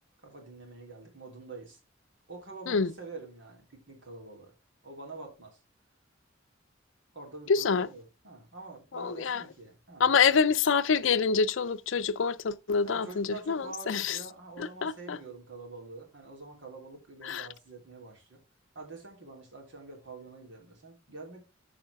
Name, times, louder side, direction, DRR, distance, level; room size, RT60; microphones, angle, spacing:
voice 1, 0.2-1.8 2.3-4.5 4.8-5.6 7.1-10.4 12.8-18.4 18.7-21.4, right 3 dB, 65° right, 3.5 m, -46 dB
voice 2, 7.5-7.9 8.9-9.4 10.0-14.2 14.6-15.2 17.2-17.5, left 5 dB, 70° left, 0.5 m, -26 dB
13.5 x 4.9 x 3.5 m
head